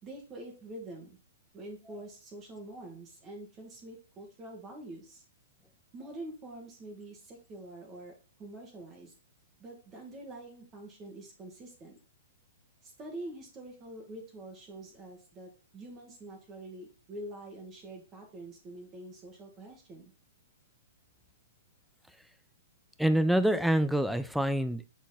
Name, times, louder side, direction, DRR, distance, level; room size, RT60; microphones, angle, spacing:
voice 1, 0.0-1.2 1.5-5.2 5.9-9.1 9.6-12.0 12.8-20.1, right 1 dB, 25° right, 1 dB, 1.9 m, -46 dB
voice 2, 23.0-24.9, right 1 dB, ahead, 11 dB, 0.5 m, -26 dB
6.2 x 4.1 x 4.0 m, 0.34 s
hypercardioid pair, 125°, 0 cm